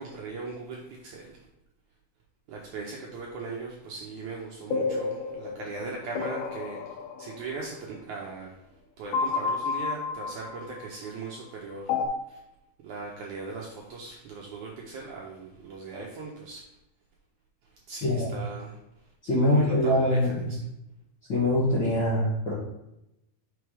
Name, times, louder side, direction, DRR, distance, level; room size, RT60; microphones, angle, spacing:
voice 1, 0.0-1.4 2.5-8.7 9.0-11.9 12.3-12.4 12.8-16.6 17.7-18.8 19.5-20.7, right 4 dB, 75° right, -2 dB, 1.8 m, -39 dB
sound 1, 4.7-7.7 9.1-11.1 11.9-12.1, left 5 dB, 90° left, 1.7 m, -31 dB
voice 2, 19.2-20.4 21.3-22.5, left 1 dB, 55° left, -8 dB, 1.3 m, -23 dB
5.8 x 4.7 x 4.8 m, 0.87 s
omnidirectional pair, 4.4 m